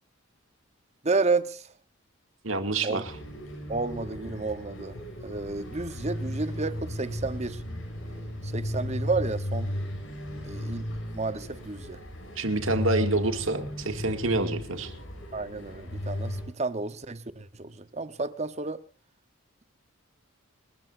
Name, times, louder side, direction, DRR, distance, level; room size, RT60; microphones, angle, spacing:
voice 1, 1.0-1.6 2.8-3.0 3.7-4.9 5.2-7.6 8.4-9.7 10.4-10.9 11.1-12.0 15.3-18.8, right 3 dB, 35° right, 0.9 m, -31 dB
voice 2, 2.4-3.1 12.4-14.9, right 2 dB, 75° right, 2.2 m, -27 dB
sound 1, 3.0-16.4, equal, 85° left, 7.3 m, -35 dB
29.5 x 14.0 x 2.6 m
head